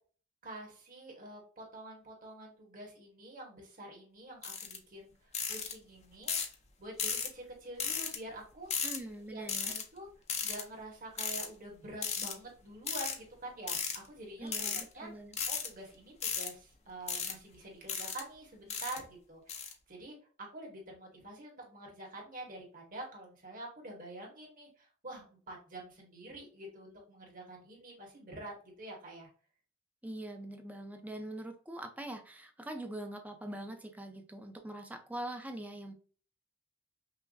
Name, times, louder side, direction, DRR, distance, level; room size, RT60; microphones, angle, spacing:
voice 1, 0.4-6.3 6.8-8.7 9.3-10.1 10.4-15.1 15.5-29.3, right 2 dB, 45° right, 0 dB, 1.5 m, -47 dB
sound 1, 4.4-4.8 5.3-5.7 6.3-6.5 7.0-7.3 7.8-8.2 8.7-9.0 9.5-9.8 10.3-10.6 11.2-11.5 12.0-12.3 12.9-13.2 13.7-14.0 14.5-14.8 15.3-15.7 16.2-16.5 17.1-17.3 17.9-18.2 18.7-19.0 19.5-19.7, left 6 dB, 35° left, 0.6 m, -35 dB
voice 2, 8.8-9.7 14.4-15.4 30.0-35.9, right 1 dB, 10° right, 5 dB, 0.6 m, -43 dB
5.6 x 2.2 x 2.6 m, 0.41 s
head